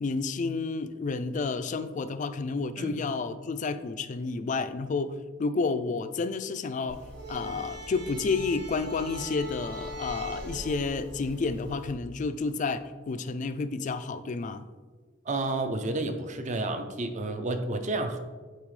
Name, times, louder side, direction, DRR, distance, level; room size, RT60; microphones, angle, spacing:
voice 1, 0.0-14.6, left 4 dB, 40° left, 11 dB, 0.3 m, -30 dB
sound 1, 6.9-11.9, equal, 65° right, 1.6 m, -41 dB
voice 2, 15.3-18.2, right 2 dB, 40° right, 7 dB, 0.5 m, -30 dB
8.7 x 4.0 x 3.2 m, 1.4 s
head